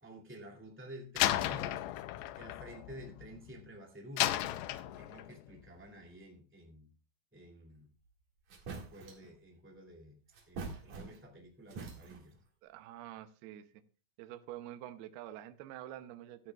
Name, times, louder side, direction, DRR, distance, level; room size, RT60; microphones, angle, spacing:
voice 1, 0.0-1.8 2.3-4.4 5.0-6.9 7.3-7.9 8.7-10.2 10.5-12.3, equal, 5° right, 0 dB, 1.2 m, -51 dB
Slam, 1.2-3.6 4.2-5.4, left 14 dB, 90° left, 2.9 m, -34 dB
sound 1, 8.0-8.1 8.5-9.3 10.3-11.4 11.7-12.4, right 4 dB, 50° right, 3.0 m, -45 dB
voice 2, 12.6-13.7 14.2-16.5, right 13 dB, 75° right, 9 dB, 2.6 m, -47 dB
14.0 x 12.5 x 2.4 m, 0.33 s
omnidirectional pair, 4.9 m